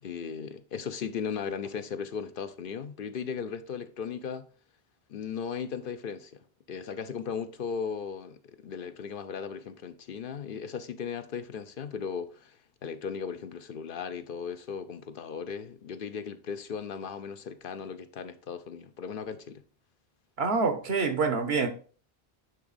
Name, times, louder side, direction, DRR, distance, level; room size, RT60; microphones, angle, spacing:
voice 1, 0.0-4.5 5.1-19.6, left 6 dB, 60° left, 0.7 m, -37 dB
voice 2, 20.4-21.7, right 4 dB, 80° right, 1.2 m, -26 dB
9.3 x 3.5 x 4.0 m
omnidirectional pair, 1.0 m